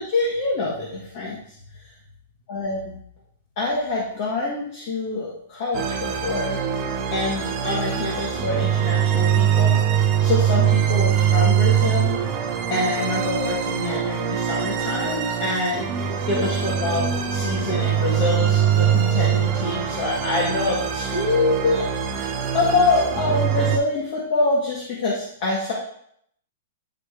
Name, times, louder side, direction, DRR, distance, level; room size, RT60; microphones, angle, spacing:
voice 1, 0.0-1.4 2.5-2.9 3.6-6.6 7.1-9.8 10.2-12.2 12.7-25.7, left 3 dB, 40° left, -4 dB, 1.5 m, -25 dB
sound 1, 5.7-23.8, right 8 dB, 25° right, 0.8 m, -23 dB
10.0 x 3.4 x 3.4 m, 0.67 s
hypercardioid pair, 170°, 0 cm